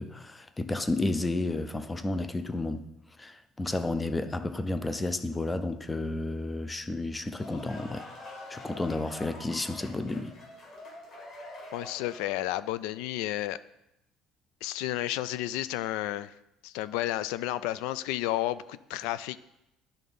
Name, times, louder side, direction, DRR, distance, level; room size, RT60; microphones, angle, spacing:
voice 1, 0.0-2.9 3.2-8.1 8.5-10.4, left 2 dB, 10° left, 0.4 m, -32 dB
sound 1, 7.1-12.4, left 2 dB, 40° left, 1.8 m, -45 dB
voice 2, 11.7-13.6 14.6-16.3 16.6-19.4, left 15 dB, 85° left, 0.3 m, -32 dB
11.0 x 3.8 x 5.4 m
cardioid pair, 165°, 0 cm